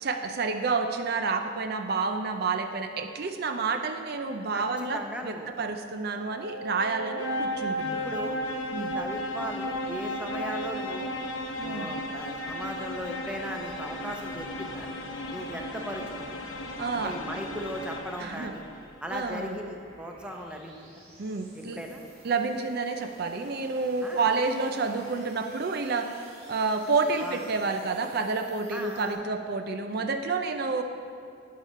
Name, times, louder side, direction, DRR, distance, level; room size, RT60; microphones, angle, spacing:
voice 1, 0.0-8.1 8.7-9.0 11.6-11.9 16.8-17.1 18.2-18.5 19.1-19.5 21.2-21.8 22.2-30.8, right 4 dB, 55° right, 6 dB, 0.5 m, -29 dB
voice 2, 4.5-5.5 7.9-8.4 8.7-11.1 11.6-14.9 15.3-16.4 16.9-18.6 19.0-20.8 21.5-22.0 24.0-24.3 27.2-27.4 28.7-29.2, equal, 5° right, 2 dB, 0.8 m, -38 dB
sound 1, 6.0-18.8, equal, 90° left, 0.9 m, -34 dB
sound 2, 17.5-29.1, right 1 dB, 35° right, 2.8 m, -54 dB
10.0 x 6.6 x 5.6 m, 2.4 s
head